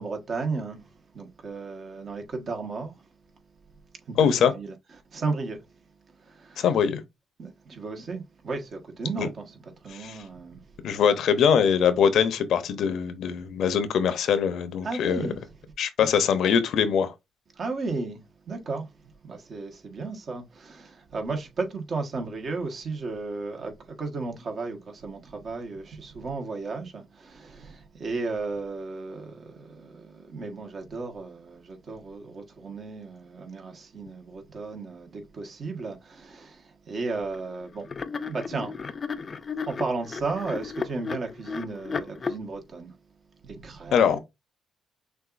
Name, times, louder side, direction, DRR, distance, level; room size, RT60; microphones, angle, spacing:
voice 1, 0.0-3.1 4.1-4.7 5.1-5.6 6.1-6.7 7.4-10.7 14.8-15.4 16.0-16.1 17.6-39.0 39.6-43.0 43.4-44.2, right 3 dB, 50° right, 1.4 m, -34 dB
voice 2, 4.2-4.5 6.6-7.0 9.2-9.3 10.0-10.2 10.8-15.3 15.8-17.1 43.9-44.2, left 7 dB, 70° left, 0.8 m, -22 dB
sound 1, 37.3-37.5 37.9-42.4, left 5 dB, 35° left, 0.6 m, -34 dB
6.3 x 2.5 x 2.6 m
cardioid pair, 90°, 0 cm